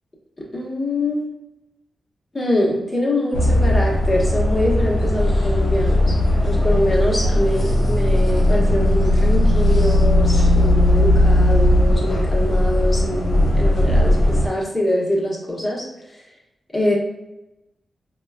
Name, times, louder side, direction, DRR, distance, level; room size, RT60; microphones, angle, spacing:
voice 1, 0.5-1.3 2.3-6.1 6.4-15.9 16.7-16.9, left 1 dB, 25° left, -4 dB, 1.0 m, -23 dB
sound 1, 3.3-14.5, left 1 dB, 70° left, 0.8 m, -17 dB
4.2 x 2.3 x 2.3 m, 0.94 s
wide cardioid pair, 110°, 0 cm